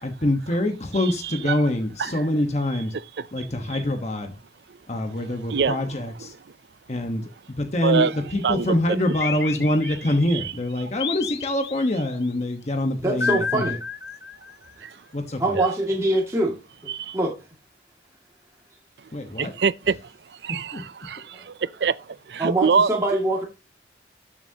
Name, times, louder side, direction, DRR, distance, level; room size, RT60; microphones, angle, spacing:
voice 1, 0.0-2.9 3.3-4.4 4.9-6.3 6.9-13.7 15.1-15.6 19.1-19.5 20.7-20.8, left 1 dB, 40° left, 1.2 m, -25 dB
voice 2, 5.2-5.8 7.8-8.1 8.4-8.7 10.3-10.5 14.8-14.9 15.5-15.7 16.9-17.2 19.4-20.0 20.4-22.0 22.3-22.9, right 5 dB, 65° right, 0.5 m, -24 dB
sound 1, 9.2-10.3 11.0-12.1 13.2-14.7, left 6 dB, 65° left, 0.9 m, -31 dB
voice 3, 13.0-13.8 15.4-16.6 17.1-17.4 21.3-21.5 22.4-23.5, right 1 dB, 15° right, 2.2 m, -23 dB
13.0 x 7.5 x 2.8 m
head